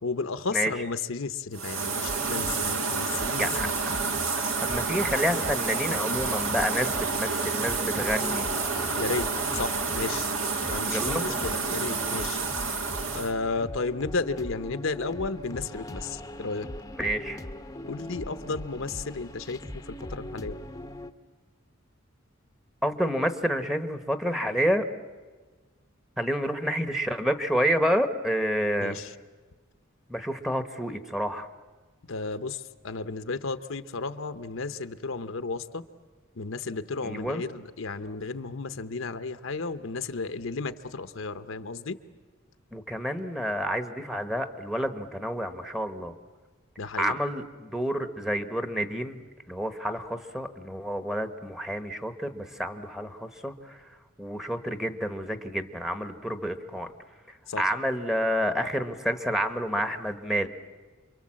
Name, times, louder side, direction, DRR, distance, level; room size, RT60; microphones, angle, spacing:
voice 1, 0.0-3.7 9.0-10.3 10.7-12.4 13.1-16.7 17.8-20.6 28.8-29.1 32.1-35.8 36.4-42.0 46.8-47.2 57.5-57.7, left 4 dB, 65° left, 11 dB, 0.8 m, -33 dB
sound 1, 1.5-13.3, right 4 dB, 70° right, 1.9 m, -29 dB
sound 2, 2.1-21.1, left 1 dB, 15° left, 0.8 m, -41 dB
voice 2, 3.4-3.9 4.6-8.4 10.9-11.3 17.0-17.4 22.8-24.8 26.2-29.0 30.1-31.5 37.0-37.4 42.7-46.1 47.0-49.2 49.5-53.8 54.2-56.9 57.6-60.5, equal, ahead, 7 dB, 1.1 m, -29 dB
28.5 x 23.5 x 7.5 m, 1.3 s
head